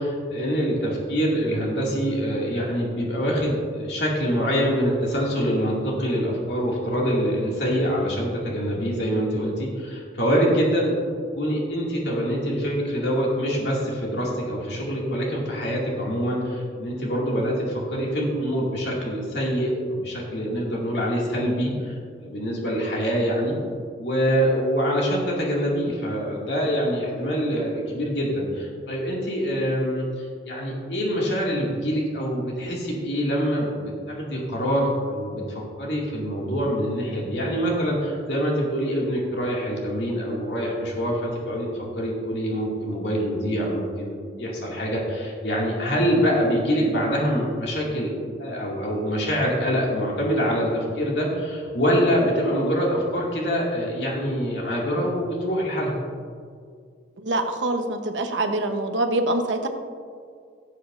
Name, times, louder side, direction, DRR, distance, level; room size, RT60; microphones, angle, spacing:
voice 1, 0.0-10.9 11.3-23.6 24.0-41.7 41.9-48.1 48.4-56.0, equal, 70° left, -3 dB, 2.3 m, -25 dB
voice 2, 57.2-59.7, right 2 dB, 90° right, 5 dB, 1.0 m, -25 dB
16.5 x 8.4 x 2.6 m, 2.1 s
head